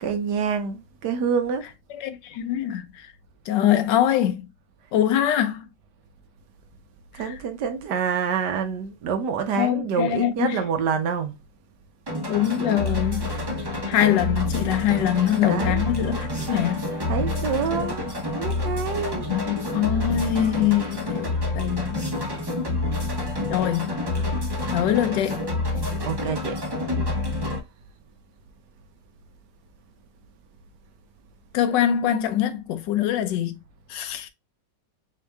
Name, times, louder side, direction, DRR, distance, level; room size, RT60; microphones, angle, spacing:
voice 1, 0.0-1.6 7.1-11.3 15.0-15.8 17.1-18.1 18.3-19.3 26.0-26.6, right 6 dB, 70° right, 1.3 m, -27 dB
voice 2, 1.9-3.1 3.5-4.5 4.9-5.6 7.2-7.3 9.6-10.6 12.3-13.3 13.9-16.9 19.3-22.1 23.5-24.0 24.7-25.4 31.5-33.6 33.9-34.3, left 11 dB, 80° left, 1.3 m, -23 dB
sound 1, 12.1-27.6, left 2 dB, 20° right, 0.8 m, -28 dB
4.4 x 2.9 x 3.3 m
omnidirectional pair, 2.0 m